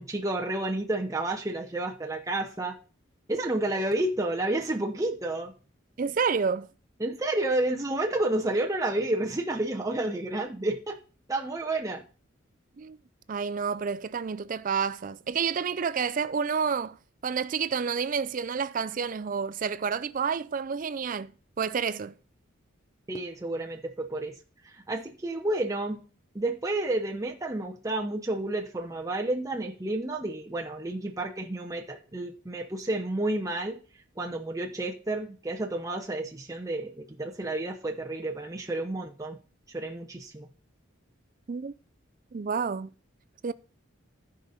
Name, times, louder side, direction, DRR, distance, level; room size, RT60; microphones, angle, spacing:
voice 1, 0.0-2.8 3.3-5.5 7.0-11.0 11.3-12.0 23.1-24.3 24.6-26.0 26.3-33.8 34.2-39.4 39.7-40.5, right 2 dB, 15° right, 0.7 m, -30 dB
voice 2, 6.0-6.7 12.8-13.0 13.3-17.0 17.2-21.3 21.6-22.1 41.5-41.7 42.3-42.9 43.4-43.5, right 6 dB, 40° right, 0.4 m, -29 dB
14.5 x 5.1 x 4.1 m
head